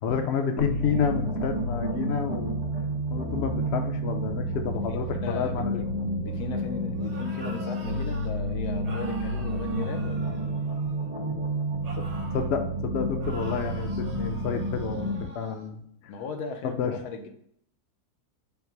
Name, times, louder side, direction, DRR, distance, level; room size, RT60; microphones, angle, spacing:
voice 1, 0.0-2.6 3.1-5.8 12.3-15.8 16.6-17.0, left 7 dB, 60° left, 5 dB, 0.7 m, -29 dB
sound 1, 0.6-15.2, right 1 dB, 85° right, 2.2 m, -30 dB
voice 2, 4.9-5.8 6.2-10.4 16.1-17.3, left 5 dB, 85° left, 4 dB, 1.2 m, -38 dB
sound 2, 6.9-8.3 8.8-11.1 11.8-12.5 13.2-15.7, right 2 dB, 55° right, 0.4 m, -46 dB
5.7 x 2.0 x 4.5 m, 0.69 s
omnidirectional pair, 1.6 m